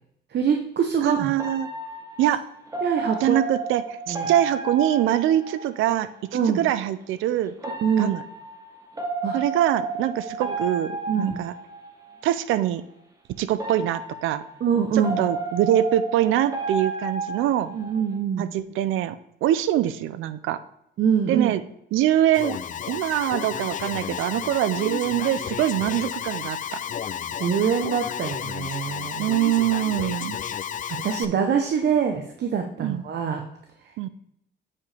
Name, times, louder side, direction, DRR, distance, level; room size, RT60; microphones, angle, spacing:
voice 1, 0.3-1.3 2.8-3.4 4.1-4.3 6.3-6.6 7.8-8.2 9.2-9.4 10.5-10.6 11.1-11.4 14.6-15.2 17.7-18.5 21.0-21.5 27.3-29.3 30.9-33.4, right 7 dB, 60° right, 4 dB, 0.9 m, -24 dB
voice 2, 1.0-1.7 2.2-2.4 3.2-7.5 8.0-8.2 9.3-11.5 12.2-12.8 13.4-14.4 14.9-17.7 18.4-20.6 21.3-21.6 21.9-22.6 22.9-26.8 29.2-30.4 32.8-33.0 34.0-34.1, right 12 dB, 90° right, 14 dB, 0.5 m, -24 dB
sound 1, 1.4-6.0 7.6-12.2 13.5-18.2, right 3 dB, 15° right, 1.4 m, -32 dB
Alarm, 22.3-31.3, left 9 dB, 40° left, 0.4 m, -32 dB
8.3 x 4.9 x 3.3 m, 0.79 s
cardioid pair, 90°, 20 cm